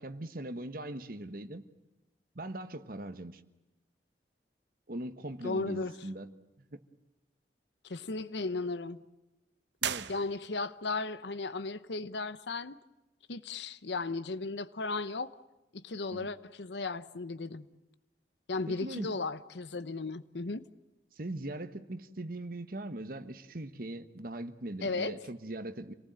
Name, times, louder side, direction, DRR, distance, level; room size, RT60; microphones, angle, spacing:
voice 1, 0.0-1.6 2.3-3.4 4.9-6.3 6.6-6.8 9.8-10.1 16.1-16.3 18.7-19.1 21.2-25.9, right 1 dB, 55° right, 1.3 m, -40 dB
voice 2, 5.4-5.9 7.8-9.0 10.1-12.8 13.3-15.3 15.7-17.6 18.5-20.6 24.8-25.1, left 3 dB, 80° left, 0.9 m, -35 dB
sound 1, 9.8-10.8, right 9 dB, 75° right, 0.9 m, -37 dB
27.5 x 19.0 x 9.0 m
head